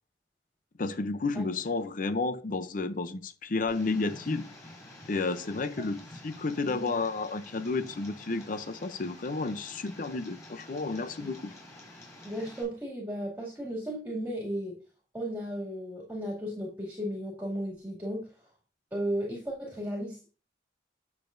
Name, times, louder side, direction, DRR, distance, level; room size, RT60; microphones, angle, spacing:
voice 1, 0.8-4.5 5.1-11.5, left 3 dB, 45° left, 0.6 m, -31 dB
Tick, 3.7-12.6, left 1 dB, 15° left, 4.8 m, -49 dB
voice 2, 12.2-14.8 15.1-18.3 18.9-20.3, equal, 10° right, 2.3 m, -35 dB
9.6 x 6.8 x 2.6 m
head